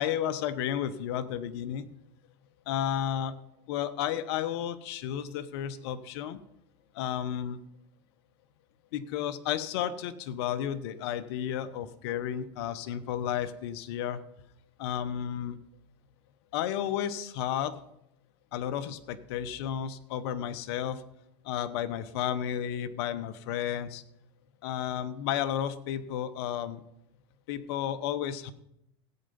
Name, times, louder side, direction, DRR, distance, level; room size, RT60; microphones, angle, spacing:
voice 1, 0.0-1.9 2.7-3.4 3.7-6.4 6.9-7.6 8.9-14.2 14.8-15.6 16.5-17.8 18.5-21.0 21.4-24.0 24.6-26.8 27.5-28.5, left 10 dB, 70° left, 13 dB, 1.1 m, -32 dB
15.0 x 8.9 x 5.4 m, 0.80 s
supercardioid pair, 115°, 14 cm